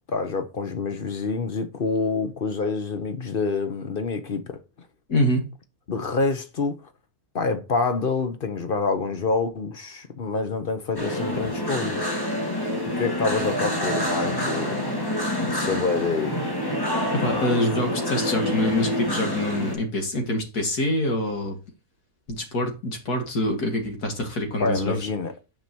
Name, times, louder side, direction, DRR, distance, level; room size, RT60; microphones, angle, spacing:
voice 1, 0.1-4.5 5.9-6.8 7.3-12.1 13.0-14.8 15.5-16.4 24.6-25.3, left 4 dB, 45° left, 0.9 m, -27 dB
voice 2, 5.1-5.5 17.1-21.6 22.3-25.0, left 1 dB, 85° left, 2.5 m, -25 dB
sound 1, 11.0-19.8, equal, 15° left, 1.7 m, -27 dB
9.4 x 5.4 x 2.8 m
omnidirectional pair, 1.6 m